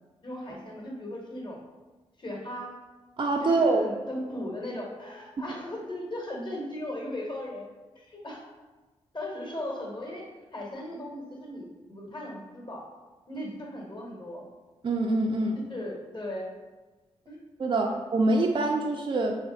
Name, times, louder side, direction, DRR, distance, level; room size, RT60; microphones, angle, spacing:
voice 1, 0.2-1.6 2.2-2.7 3.4-7.7 7.9-8.4 9.1-12.8 13.3-14.4 15.7-16.5 17.3-17.4, left 1 dB, 35° left, -1 dB, 1.2 m, -37 dB
voice 2, 3.2-3.8 14.8-15.6 17.6-19.4, right 2 dB, 40° right, 1 dB, 0.4 m, -25 dB
3.3 x 2.2 x 3.9 m, 1.2 s
supercardioid pair, 40°, 13 cm